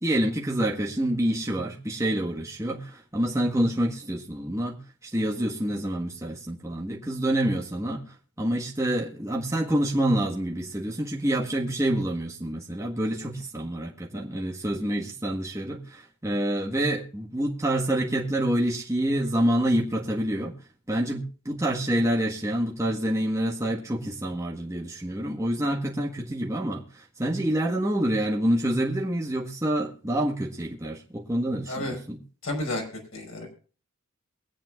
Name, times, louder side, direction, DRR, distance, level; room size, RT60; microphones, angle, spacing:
voice 1, 0.0-20.5 20.9-32.2, right 1 dB, 15° right, 1.6 m, -27 dB
voice 2, 32.4-32.8 33.1-33.5, left 1 dB, 75° left, 5.3 m, -31 dB
23.5 x 8.8 x 2.5 m
head